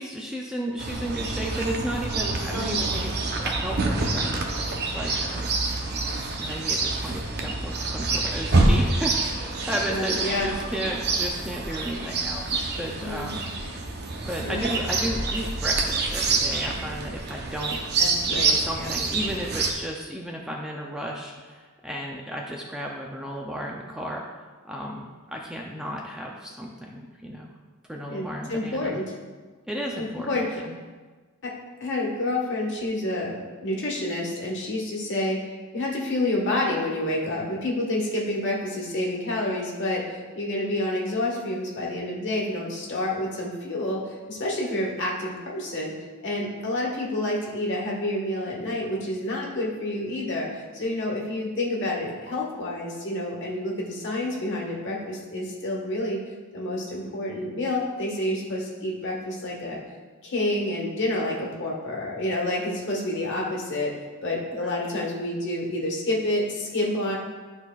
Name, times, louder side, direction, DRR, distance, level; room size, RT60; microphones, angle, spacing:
voice 1, 0.0-5.4 6.4-13.4 13.7-13.9 14.3-17.8 18.3-24.2 24.6-27.5 27.8-29.0 29.7-30.8 64.5-64.9, equal, 5° right, -2 dB, 0.4 m, -34 dB
Chirp tweet, 0.8-19.7, right 3 dB, 45° right, 0.7 m, -27 dB
voice 2, 2.5-2.8 9.9-10.5 13.0-13.3 13.6-13.7 14.4-14.6 18.0-18.9 28.1-29.0 29.9-30.6 31.4-31.5 31.8-33.3 33.6-35.4 35.7-45.9 46.2-56.2 56.5-59.8 60.2-63.9 64.2-67.2, left 1 dB, 55° left, -2 dB, 1.4 m, -28 dB
11.0 x 4.1 x 2.4 m, 1.4 s
head